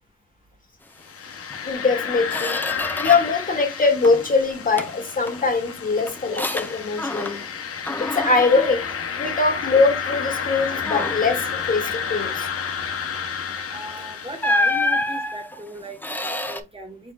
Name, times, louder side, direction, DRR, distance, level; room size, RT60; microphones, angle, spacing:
sound 1, 1.0-15.0, left 6 dB, 50° left, 1.1 m, -31 dB
Squeak, 1.5-1.6 2.0-3.4 3.8-4.3 4.8-7.6 7.9-9.7 10.1-10.3 10.8-11.4 13.5-13.7 14.4-16.6, left 2 dB, 5° left, 0.7 m, -28 dB
voice 1, 1.6-2.6 3.0-7.4 8.0-8.9 9.2-12.5, left 4 dB, 30° left, 1.4 m, -22 dB
voice 2, 13.7-17.1, right 1 dB, 20° right, 1.6 m, -37 dB
4.8 x 4.5 x 2.4 m
cardioid pair, 90°, 30 cm